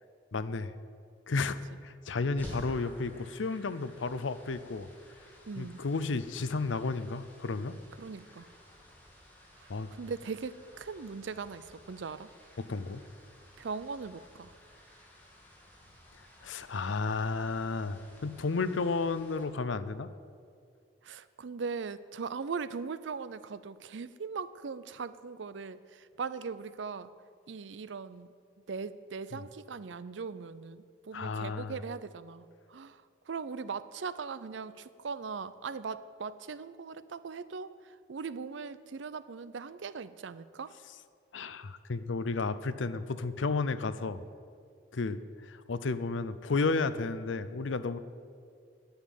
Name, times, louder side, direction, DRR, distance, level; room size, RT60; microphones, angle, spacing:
voice 1, 0.3-0.7 1.3-4.9 5.6-7.7 9.7-9.9 12.6-13.0 16.4-20.1 29.3-29.4 31.1-31.8 41.3-44.2 44.9-45.2 45.5-48.0, left 3 dB, 80° left, 13 dB, 0.6 m, -32 dB
sound 1, 2.4-19.4, equal, 10° left, 2.0 m, -53 dB
voice 2, 5.5-5.8 8.0-8.5 9.6-12.3 13.6-14.5 21.0-27.1 27.5-28.3 28.7-40.7, right 5 dB, 75° right, 15 dB, 0.5 m, -40 dB
10.5 x 7.3 x 9.3 m, 2.2 s
head